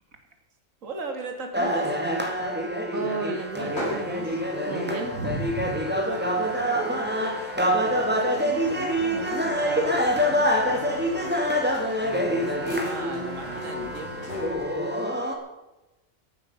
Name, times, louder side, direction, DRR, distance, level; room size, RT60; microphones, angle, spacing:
voice 1, 0.8-2.0 5.8-7.3 7.8-11.0 12.0-14.3, right 3 dB, 70° right, 5 dB, 2.2 m, -38 dB
sound 1, 1.5-15.3, equal, 5° right, 2.1 m, -26 dB
voice 2, 2.9-5.8, right 3 dB, 90° right, 4 dB, 2.6 m, -33 dB
sound 2, 3.5-14.8, equal, 50° left, 5.9 m, -40 dB
14.5 x 11.5 x 5.6 m, 1.0 s
omnidirectional pair, 1.4 m